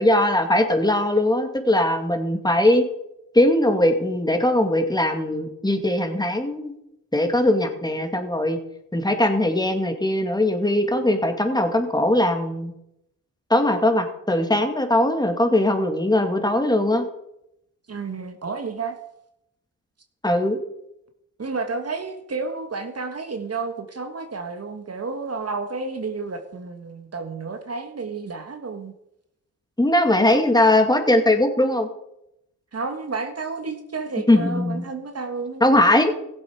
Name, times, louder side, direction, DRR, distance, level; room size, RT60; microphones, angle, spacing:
voice 1, 0.0-2.9 3.3-6.7 7.1-8.6 8.9-12.7 13.5-17.0 20.2-20.6 29.8-31.9 34.3-34.8 35.6-36.1, left 1 dB, 10° left, 6 dB, 2.4 m, -20 dB
voice 2, 17.9-19.0 21.4-28.9 30.1-30.4 32.7-35.6, right 4 dB, 45° right, 6 dB, 1.7 m, -31 dB
16.0 x 8.0 x 4.8 m, 0.82 s
supercardioid pair, 55°, 36 cm